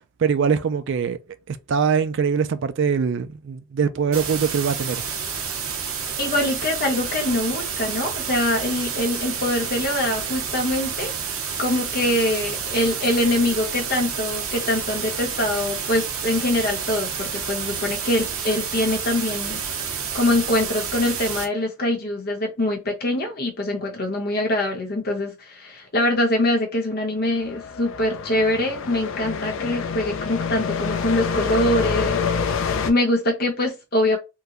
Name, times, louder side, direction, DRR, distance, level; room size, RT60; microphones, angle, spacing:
voice 1, 0.2-1.2 1.5-5.0, right 6 dB, 55° right, 0.3 m, -22 dB
sound 1, 4.1-21.5, right 6 dB, 80° right, 0.8 m, -29 dB
voice 2, 6.2-11.1 11.6-19.6 20.1-32.6 32.8-34.2, left 1 dB, 45° left, 0.9 m, -24 dB
sound 2, 27.3-32.9, left 6 dB, 65° left, 0.4 m, -26 dB
3.7 x 2.2 x 2.9 m
head